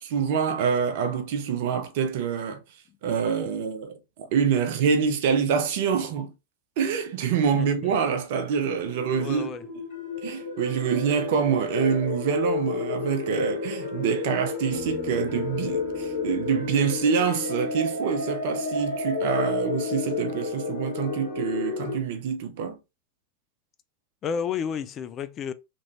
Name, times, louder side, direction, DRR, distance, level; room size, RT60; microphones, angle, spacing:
voice 1, 0.0-2.6 3.0-6.3 6.8-9.5 10.2-22.8, right 6 dB, 50° right, 0.6 m, -26 dB
voice 2, 7.5-7.9 9.2-9.7 24.2-25.5, left 7 dB, 30° left, 0.3 m, -31 dB
sound 1, 8.9-22.0, left 4 dB, 50° left, 1.5 m, -31 dB
Piano, 14.7-18.4, right 1 dB, 10° left, 1.1 m, -46 dB
3.0 x 2.5 x 3.0 m
figure-of-eight pair, 90°, 0 cm